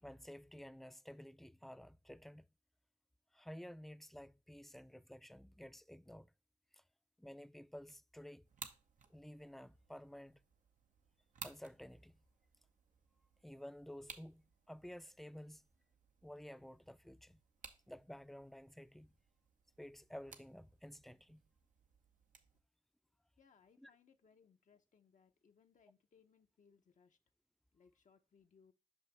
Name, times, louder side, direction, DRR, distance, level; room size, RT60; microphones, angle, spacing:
voice 1, 0.0-2.5 3.3-6.3 6.7-6.8 7.2-8.5 9.1-10.4 11.4-12.2 13.4-15.6 16.2-17.4 17.9-19.1 19.8-21.4 23.8-23.9, equal, ahead, 0.3 m, -53 dB
sound 1, 8.4-22.6, right 5 dB, 85° right, 0.7 m, -59 dB
voice 2, 23.4-27.2 27.7-28.7, left 6 dB, 75° left, 0.7 m, -69 dB
6.0 x 5.4 x 3.2 m
cardioid pair, 45°, 13 cm